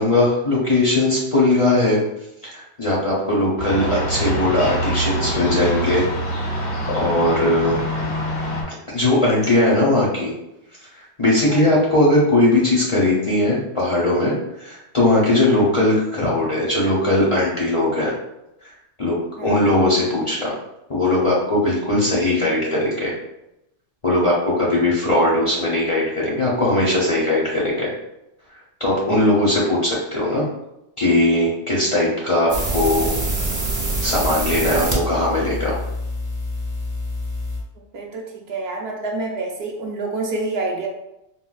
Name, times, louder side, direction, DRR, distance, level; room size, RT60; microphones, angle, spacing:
voice 1, 0.0-2.0 2.4-6.0 6.4-6.7 6.9-7.8 8.9-10.3 10.9-18.1 18.6-18.7 19.0-19.2 19.4-20.5 20.9-23.1 24.0-27.9 28.8-30.4 31.0-33.1 34.0-35.8, left 1 dB, 35° left, -6 dB, 0.6 m, -19 dB
sound 1, 3.6-8.6, equal, 60° left, 0.9 m, -25 dB
voice 2, 11.5-11.8 15.4-15.7 19.4-19.7 37.9-40.9, right 3 dB, 70° right, 0 dB, 0.8 m, -28 dB
sound 2, 32.5-37.6, right 1 dB, 25° right, 0.4 m, -25 dB
3.7 x 2.2 x 2.3 m, 0.87 s
omnidirectional pair, 1.2 m